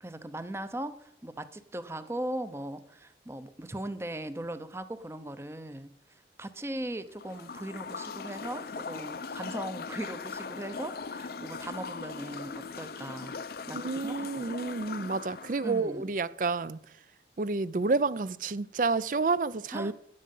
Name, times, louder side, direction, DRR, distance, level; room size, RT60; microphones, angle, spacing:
voice 1, 0.0-5.9 6.4-13.3 13.7-14.6 15.6-16.1 19.7-19.9, right 1 dB, 15° right, 0.7 m, -39 dB
sound 1, 7.1-15.8, left 4 dB, 55° left, 0.6 m, -40 dB
voice 2, 13.7-16.8 17.4-19.9, right 3 dB, 45° right, 0.4 m, -29 dB
13.0 x 9.8 x 5.4 m
head